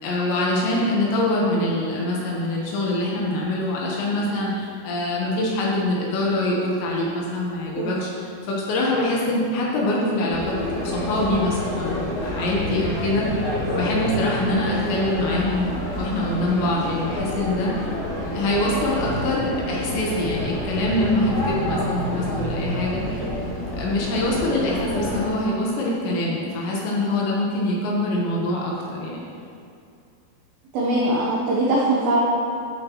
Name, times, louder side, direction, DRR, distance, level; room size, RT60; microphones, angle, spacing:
voice 1, 0.0-13.4 13.8-17.9 18.3-23.3 23.8-29.2, left 1 dB, 70° left, -4 dB, 3.1 m, -24 dB
sound 1, 10.3-25.2, left 1 dB, 50° left, 2.5 m, -28 dB
voice 2, 30.7-32.2, right 1 dB, 80° right, -5 dB, 2.1 m, -22 dB
12.0 x 7.4 x 3.0 m, 2.5 s
omnidirectional pair, 5.8 m